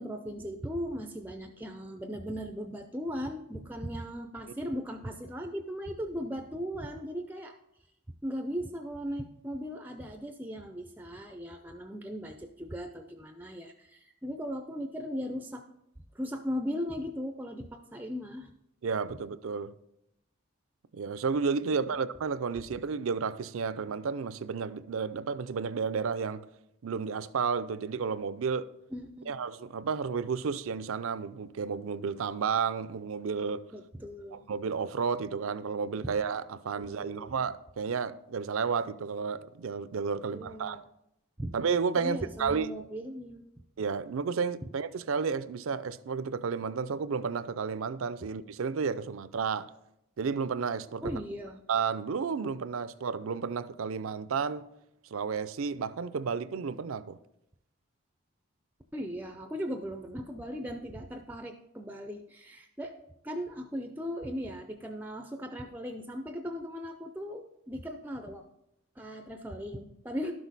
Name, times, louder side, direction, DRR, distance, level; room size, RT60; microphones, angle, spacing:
voice 1, 0.0-7.5 8.2-15.7 16.1-18.5 21.7-22.0 28.9-29.4 33.7-34.5 36.8-37.4 40.2-40.9 41.4-41.5 41.9-43.5 51.0-51.6 58.9-68.4 69.0-70.3, equal, 10° right, 0.4 m, -38 dB
voice 2, 18.8-19.7 20.9-26.4 26.8-28.7 29.3-33.6 34.3-40.8 41.5-42.7 43.8-49.7 50.2-51.0 51.7-54.6 55.1-57.2, right 5 dB, 70° right, 0.4 m, -32 dB
12.0 x 6.2 x 4.0 m
head